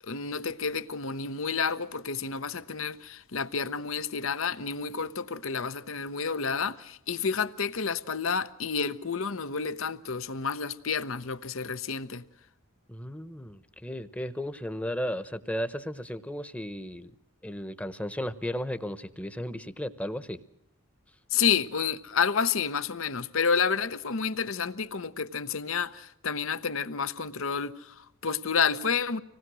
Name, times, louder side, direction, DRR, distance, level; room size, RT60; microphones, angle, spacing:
voice 1, 0.0-12.2 21.3-29.2, left 6 dB, 70° left, 0.9 m, -30 dB
voice 2, 12.9-17.1 17.4-20.4, equal, 5° left, 0.9 m, -35 dB
26.0 x 19.0 x 6.3 m
head